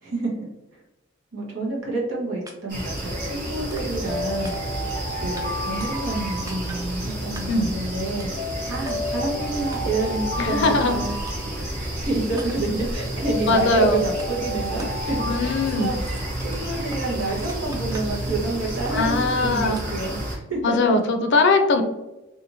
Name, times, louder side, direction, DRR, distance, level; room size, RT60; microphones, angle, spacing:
voice 1, 0.0-0.8 1.3-4.7 5.1-8.3 8.6-11.1 11.5-16.1 16.4-19.1 19.4-21.0, right 2 dB, 80° right, -3 dB, 1.0 m, -29 dB
sound 1, 2.5-2.6 3.0-3.2 3.7-4.1 4.4-4.9 5.4-5.5 5.8-6.2 6.5-6.9 7.3-7.7 8.2-8.4 8.9-9.0 9.7-10.1 10.6-10.7 11.3-11.4 11.8-11.9 12.4-12.8 13.4-13.9 14.2-14.3 14.8-15.0 15.4-17.0 17.4-18.3 18.7-19.3 19.7-20.1, right 2 dB, 15° right, 0.4 m, -42 dB
sound 2, 2.7-20.4, right 1 dB, 40° right, 1.0 m, -30 dB
sound 3, 4.1-7.2 8.4-12.1 13.2-16.5, left 1 dB, 20° left, 0.7 m, -33 dB
voice 2, 10.4-11.0 13.5-14.0 15.3-15.9 18.9-19.8 20.6-21.8, left 3 dB, 60° left, 6 dB, 0.4 m, -20 dB
2.9 x 2.5 x 2.6 m, 0.98 s
head